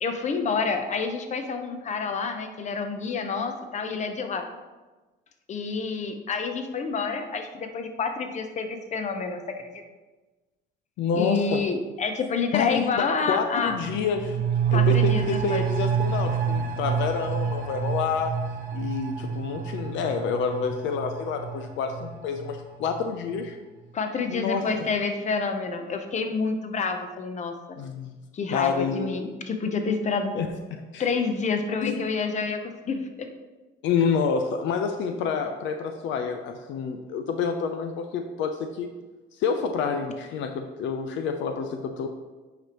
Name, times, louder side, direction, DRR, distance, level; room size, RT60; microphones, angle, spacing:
voice 1, 0.0-4.5 5.5-9.8 11.1-13.7 14.7-15.6 23.9-27.8 28.3-30.3 31.0-33.3, left 4 dB, 35° left, 6 dB, 0.8 m, -28 dB
voice 2, 11.0-11.6 12.5-14.4 14.7-18.4 18.7-23.6 24.3-24.6 27.8-28.1 28.5-29.1 30.3-31.0 31.8-32.0 33.8-38.9 39.4-42.1, left 6 dB, 75° left, 6 dB, 0.6 m, -28 dB
sound 1, 13.7-23.1 23.4-23.5, right 7 dB, 45° right, 0.6 m, -28 dB
8.9 x 5.1 x 3.0 m, 1.2 s
cardioid pair, 100°, 20 cm